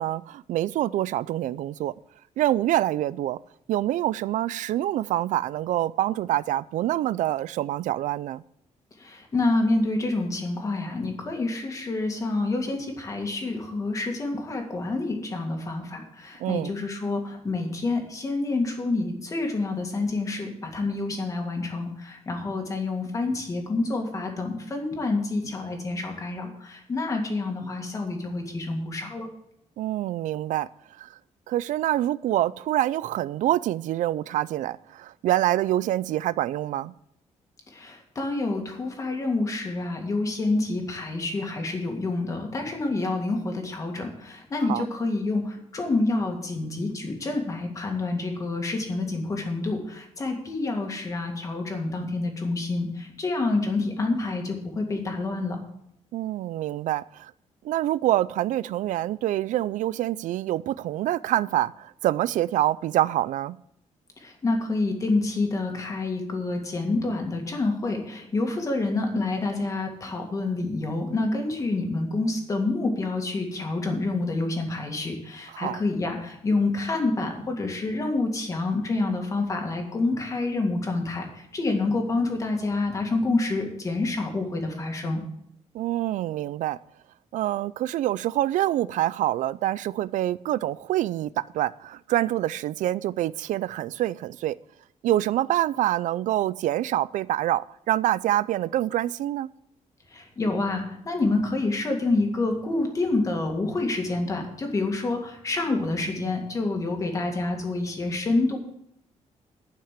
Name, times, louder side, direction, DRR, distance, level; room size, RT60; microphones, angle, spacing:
voice 1, 0.0-1.9 2.4-3.4 3.7-8.4 16.4-16.7 29.8-30.7 31.0-31.1 31.5-36.9 44.7-44.9 56.1-57.3 57.6-63.6 75.5-75.8 85.7-86.8 87.3-94.6 95.0-99.5, right 13 dB, 90° right, 0.4 m, -26 dB
voice 2, 9.0-29.3 37.7-55.6 64.2-85.2 100.1-108.6, left 2 dB, 25° left, 1.9 m, -28 dB
11.5 x 5.9 x 7.4 m
wide cardioid pair, 180°, 13 cm